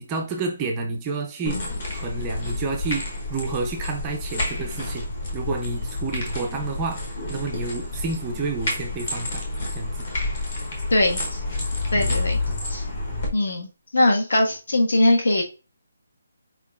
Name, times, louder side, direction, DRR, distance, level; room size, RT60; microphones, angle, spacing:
voice 1, 0.0-9.4 9.7-10.1 11.9-12.2 12.5-12.6, right 3 dB, 10° right, 0.3 m, -30 dB
sound 1, 1.4-13.3, left 2 dB, 25° left, 0.9 m, -29 dB
voice 2, 10.9-11.4 11.9-12.4 12.7-12.8 13.3-15.4, left 1 dB, 60° left, 1.3 m, -21 dB
4.4 x 3.8 x 2.4 m
hypercardioid pair, 180°, 0 cm